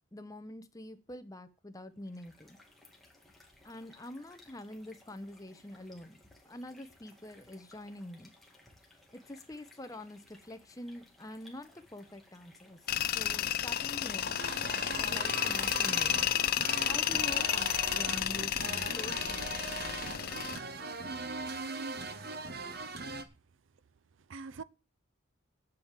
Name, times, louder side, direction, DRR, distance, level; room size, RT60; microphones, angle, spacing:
voice 1, 0.1-2.6 3.6-6.2 6.4-8.3 9.1-12.8 13.1-14.3 15.0-16.2 16.8-19.9, left 1 dB, 15° left, 0.9 m, -46 dB
sound 1, 2.0-20.6, left 1 dB, ahead, 2.1 m, -61 dB
Tools, 12.9-20.6, left 11 dB, 45° left, 0.5 m, -32 dB
sound 2, 14.2-23.2, right 3 dB, 50° right, 1.0 m, -40 dB
voice 2, 21.0-22.0 24.3-24.6, right 3 dB, 70° right, 0.5 m, -42 dB
8.5 x 7.7 x 7.3 m
head